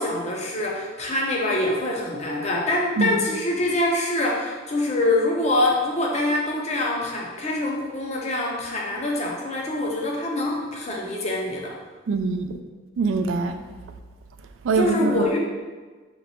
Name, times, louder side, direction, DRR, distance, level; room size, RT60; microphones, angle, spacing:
voice 1, 0.0-11.8 14.8-15.4, left 1 dB, 35° left, -2 dB, 0.6 m, -25 dB
voice 2, 12.1-12.6 13.0-13.6 14.6-15.3, right 4 dB, 75° right, 8 dB, 0.3 m, -23 dB
3.2 x 3.0 x 4.2 m, 1.3 s
head